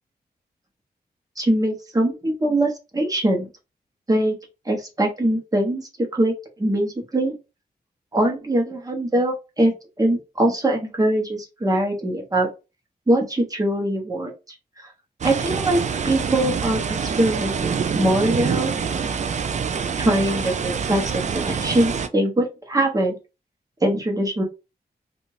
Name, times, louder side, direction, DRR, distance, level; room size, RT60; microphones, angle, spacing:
voice 1, 1.4-3.5 4.1-4.3 4.7-7.4 8.1-12.5 13.1-14.3 15.2-18.7 20.0-23.2 23.8-24.4, right 1 dB, 20° right, 1 dB, 1.0 m, -22 dB
sound 1, 15.2-22.1, right 6 dB, 45° right, 0.4 m, -26 dB
2.8 x 2.5 x 3.1 m, 0.27 s
wide cardioid pair, 125°, 17 cm